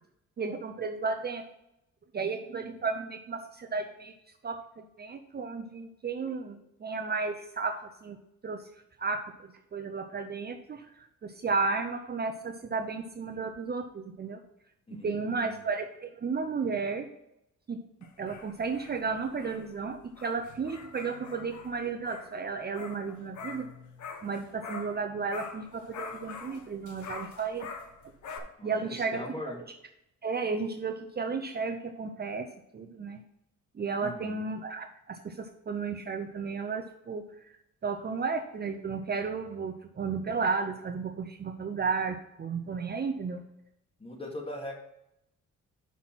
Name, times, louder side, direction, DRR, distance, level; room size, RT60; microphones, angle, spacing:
voice 1, 0.4-1.4 2.1-4.1 4.4-8.2 8.4-8.6 9.0-14.4 15.0-17.1 17.7-17.8 18.2-23.7 24.2-27.7 28.4-29.2 30.2-32.5 32.7-33.2 33.7-37.6 37.8-43.4, right 4 dB, 35° right, 5 dB, 0.7 m, -33 dB
voice 2, 14.9-15.6 28.6-29.6 34.0-34.3 44.0-44.7, left 1 dB, 20° left, 0 dB, 2.2 m, -40 dB
sound 1, 18.0-25.0 25.3-28.4, left 5 dB, 70° left, 1.1 m, -45 dB
5.9 x 5.7 x 6.1 m, 0.84 s
cardioid pair, 90°, 30 cm